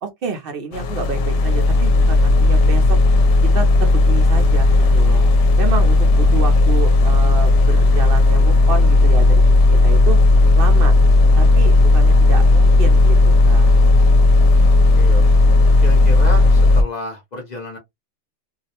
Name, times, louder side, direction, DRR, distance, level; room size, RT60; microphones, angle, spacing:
voice 1, 0.0-3.0 3.4-5.3 5.6-10.2 10.5-10.9 11.4-13.9, right 4 dB, 60° right, 0.7 m, -29 dB
sound 1, 0.7-16.8, left 2 dB, 80° left, 0.9 m, -13 dB
voice 2, 14.7-15.4 15.8-17.8, left 1 dB, 45° left, 0.6 m, -31 dB
2.4 x 2.0 x 2.7 m
omnidirectional pair, 1.2 m